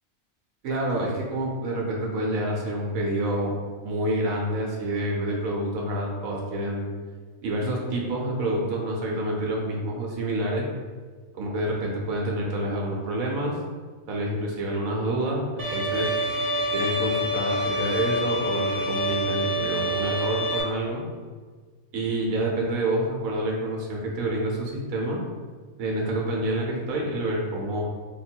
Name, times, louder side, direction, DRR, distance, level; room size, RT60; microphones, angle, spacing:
voice 1, 0.6-3.5 3.8-6.9 7.4-10.7 11.3-13.6 14.1-16.1 16.7-21.0 21.9-25.2 25.8-27.8, right 1 dB, 85° right, -1 dB, 1.1 m, -28 dB
Bowed string instrument, 15.6-20.6, equal, 40° right, 1.1 m, -27 dB
3.5 x 2.3 x 4.3 m, 1.5 s
omnidirectional pair, 1.4 m